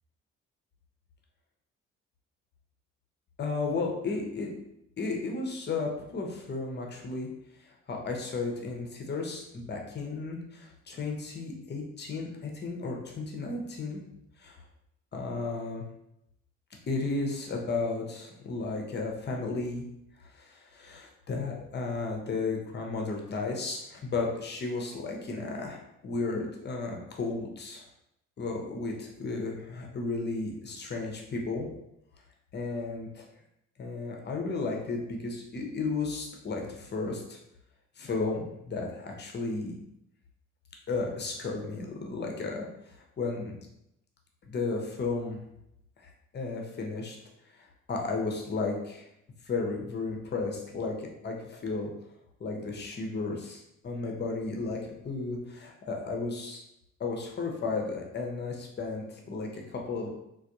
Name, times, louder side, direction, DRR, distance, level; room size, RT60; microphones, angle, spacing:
voice 1, 3.4-4.5 5.0-7.3 7.9-14.0 14.4-14.6 15.1-15.8 16.9-19.8 20.2-27.8 28.4-31.7 32.5-33.2 33.8-37.4 38.0-39.7 40.9-42.7 42.9-43.5 44.4-45.4 46.0-47.2 47.6-49.1 49.5-51.9 52.4-56.6 57.0-60.1, left 3 dB, 30° left, 1 dB, 0.7 m, -34 dB
3.3 x 2.2 x 2.7 m, 0.81 s
figure-of-eight pair, 40°, 37 cm